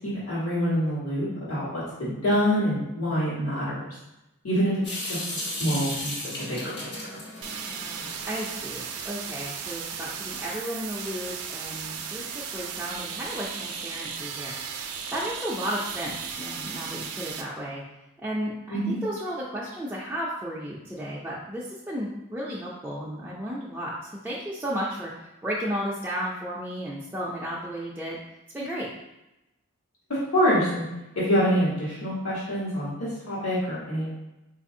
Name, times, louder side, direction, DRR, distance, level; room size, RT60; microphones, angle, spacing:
voice 1, 0.3-3.9 4.4-5.2 5.6-6.1 6.5-6.9 18.7-18.9 30.1-30.8 31.1-34.1, equal, 80° left, -9 dB, 1.2 m, -26 dB
Water tap faucet / Sink (filling or washing) / Drip, 4.8-8.9, left 1 dB, 50° left, 1.0 m, -35 dB
sound 1, 7.4-17.4, right 6 dB, 80° right, 0.4 m, -36 dB
voice 2, 7.6-17.8 18.2-28.2 28.5-28.9, equal, 10° right, -7 dB, 0.3 m, -34 dB
4.0 x 2.5 x 2.6 m, 0.94 s
head